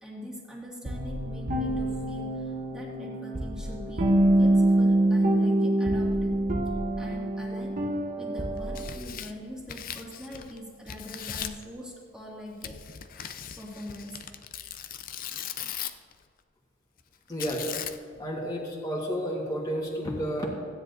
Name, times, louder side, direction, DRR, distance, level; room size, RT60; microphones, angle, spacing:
voice 1, 0.0-4.1 4.4-6.4 7.0-7.8 8.1-12.8 13.6-14.2, equal, 5° right, -5 dB, 2.2 m, -42 dB
sound 1, 0.9-9.0, right 1 dB, 40° right, 1.0 m, -25 dB
Tearing, 8.6-10.6 10.9-11.6 12.6-16.1 17.4-18.2, left 9 dB, 45° left, 0.5 m, -38 dB
voice 2, 17.3-17.7 18.2-20.5, equal, 20° left, -4 dB, 1.6 m, -31 dB
15.5 x 9.8 x 2.7 m, 2.2 s
head